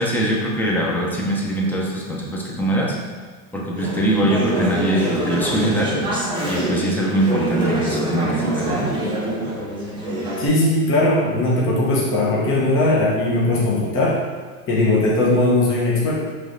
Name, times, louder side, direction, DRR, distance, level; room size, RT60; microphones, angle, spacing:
voice 1, 0.0-2.9 3.5-8.9, right 1 dB, 5° left, -3 dB, 0.5 m, -22 dB
Conversation / Chatter, 3.8-10.5, right 1 dB, 10° right, 1.1 m, -25 dB
voice 2, 10.4-14.2 14.7-16.1, left 2 dB, 30° left, -5 dB, 0.8 m, -19 dB
4.6 x 3.2 x 2.6 m, 1.5 s
supercardioid pair, 120°, 43 cm